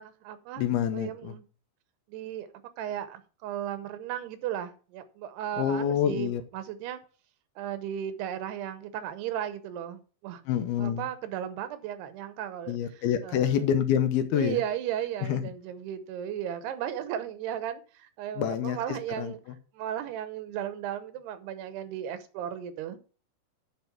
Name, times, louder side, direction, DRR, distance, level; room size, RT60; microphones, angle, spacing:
voice 1, 0.0-0.7 0.9-1.4 2.1-2.5 2.8-7.0 7.6-10.4 10.8-13.6 14.3-19.4 19.7-23.0, right 10 dB, 90° right, 3.1 m, -35 dB
voice 2, 0.6-1.4 5.6-6.4 10.5-11.1 12.7-14.6 15.3-15.4 18.4-19.6, left 9 dB, 75° left, 2.7 m, -27 dB
9.5 x 5.6 x 5.9 m
omnidirectional pair, 4.6 m